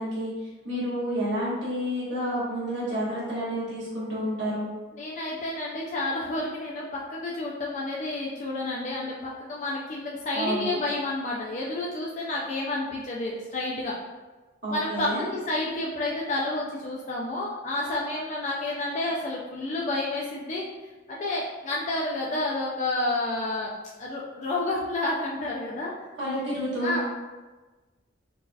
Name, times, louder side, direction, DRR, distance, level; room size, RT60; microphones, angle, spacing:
voice 1, 0.0-4.7 10.3-10.7 14.6-15.3 26.2-27.0, equal, 65° right, -8 dB, 1.4 m, -30 dB
voice 2, 4.9-13.9 14.7-20.7 21.1-23.7 24.0-25.9 26.8-27.0, left 2 dB, 35° left, -3 dB, 0.3 m, -30 dB
3.8 x 2.3 x 2.6 m, 1.2 s
head